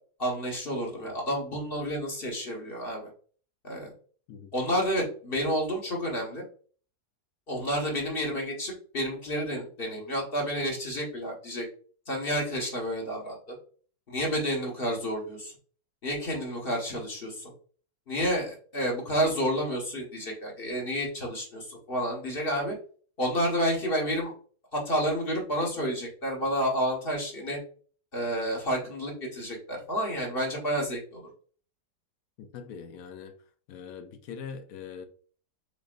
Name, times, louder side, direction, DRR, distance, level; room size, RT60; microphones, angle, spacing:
voice 1, 0.2-3.1 3.6-3.9 4.5-6.4 7.5-11.7 12.1-13.6 14.1-15.5 16.0-17.5 18.1-22.8 23.2-24.3 24.7-27.6 28.1-31.3, equal, 35° left, 1.7 m, -30 dB
voice 2, 32.4-33.4 33.7-35.1, left 6 dB, 65° left, 1.0 m, -42 dB
5.0 x 4.2 x 2.5 m
omnidirectional pair, 1.8 m